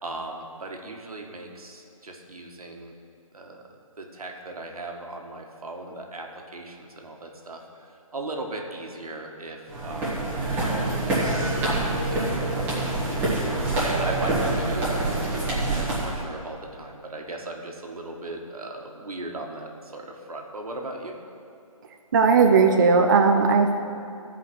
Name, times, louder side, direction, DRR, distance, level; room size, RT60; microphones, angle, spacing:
voice 1, 0.0-2.9 3.3-3.6 4.0-12.6 13.1-13.4 13.8-21.2, right 2 dB, 90° right, 2 dB, 1.6 m, -38 dB
sound 1, 9.7-16.2, right 2 dB, 10° right, 1.7 m, -26 dB
voice 2, 22.1-23.8, right 5 dB, 35° right, 3 dB, 0.5 m, -17 dB
14.5 x 5.1 x 6.3 m, 2.6 s
hypercardioid pair, 160°, 18 cm